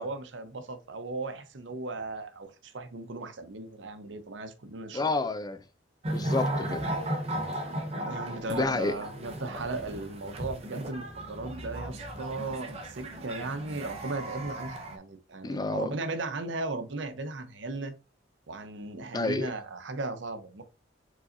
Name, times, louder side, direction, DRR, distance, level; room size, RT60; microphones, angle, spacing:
voice 1, 0.0-5.3 7.9-17.9 18.5-20.6, right 3 dB, 80° right, 0.8 m, -37 dB
voice 2, 4.9-5.6 6.1-6.9 8.5-9.0 15.4-15.9 19.1-19.5, left 3 dB, 20° left, 0.4 m, -29 dB
sound 1, 6.0-15.0, right 1 dB, 35° right, 0.8 m, -35 dB
5.0 x 4.0 x 2.6 m
head